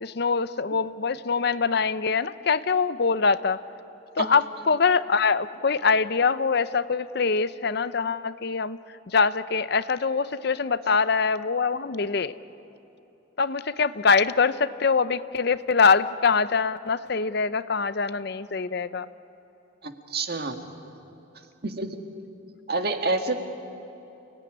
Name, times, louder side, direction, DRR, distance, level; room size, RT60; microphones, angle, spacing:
voice 1, 0.0-3.6 4.2-8.8 9.1-12.3 13.4-19.1, left 5 dB, 55° left, 14 dB, 0.6 m, -24 dB
voice 2, 19.8-20.6 21.6-21.9 22.7-23.4, right 3 dB, 50° right, 5 dB, 1.8 m, -27 dB
30.0 x 18.0 x 10.0 m, 2.9 s
head